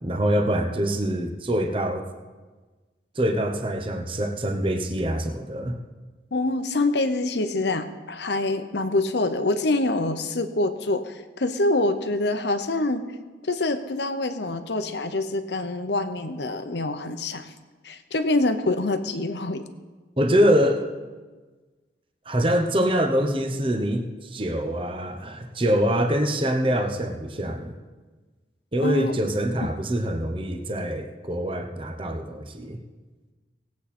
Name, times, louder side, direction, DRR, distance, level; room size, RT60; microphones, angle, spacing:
voice 1, 0.0-2.1 3.2-5.8 20.2-20.9 22.3-27.7 28.7-32.8, equal, 30° right, 5 dB, 1.0 m, -24 dB
voice 2, 6.3-13.0 13.4-17.5 17.8-19.6 28.8-29.1, left 2 dB, 75° left, 9 dB, 0.9 m, -25 dB
19.0 x 8.4 x 4.3 m, 1.3 s
head